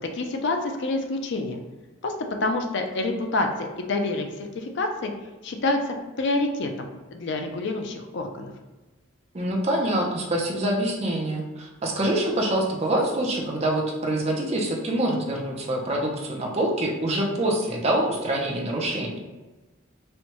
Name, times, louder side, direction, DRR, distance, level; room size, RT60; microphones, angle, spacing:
voice 1, 0.1-1.6 2.0-2.1 2.4-4.3 4.5-5.1 5.4-8.5, left 2 dB, 60° left, 4 dB, 0.4 m, -27 dB
voice 2, 9.3-19.2, right 1 dB, 30° right, -1 dB, 0.6 m, -25 dB
4.3 x 2.2 x 2.9 m, 1.2 s
head